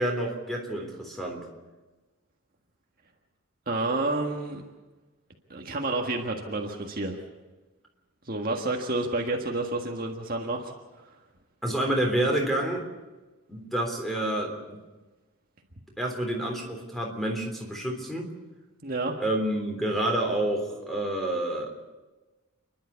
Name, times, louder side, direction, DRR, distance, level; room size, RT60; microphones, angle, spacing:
voice 1, 0.0-1.4 11.6-12.8 13.5-14.8 16.0-18.3 19.2-21.7, right 1 dB, ahead, 1 dB, 3.5 m, -28 dB
voice 2, 3.7-4.6 5.5-7.2 8.3-10.7 18.8-19.1, right 2 dB, 40° right, 2 dB, 1.6 m, -29 dB
29.0 x 11.5 x 8.3 m, 1.2 s
head